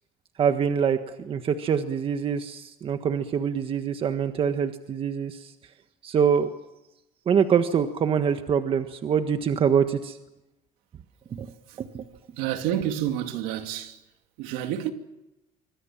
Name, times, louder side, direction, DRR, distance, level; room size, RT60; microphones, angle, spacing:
voice 1, 0.4-5.5 6.0-6.5 7.2-10.2 11.3-11.5 11.8-12.0, right 7 dB, 40° right, 1.5 m, -25 dB
voice 2, 12.4-14.0 14.4-14.9, right 11 dB, 90° right, 2.7 m, -29 dB
26.5 x 24.5 x 7.4 m
cardioid pair, 125°, 14 cm